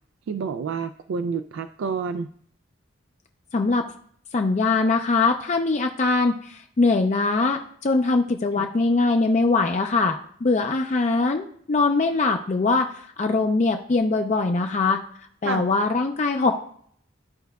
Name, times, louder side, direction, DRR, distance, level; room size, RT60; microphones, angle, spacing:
voice 1, 0.3-2.3 8.5-8.7 15.4-15.7, right 5 dB, 80° right, 9 dB, 0.3 m, -29 dB
voice 2, 3.5-3.8 4.3-15.0 15.4-16.5, left 3 dB, 35° left, 4 dB, 0.4 m, -22 dB
13.5 x 4.5 x 2.3 m, 0.63 s
head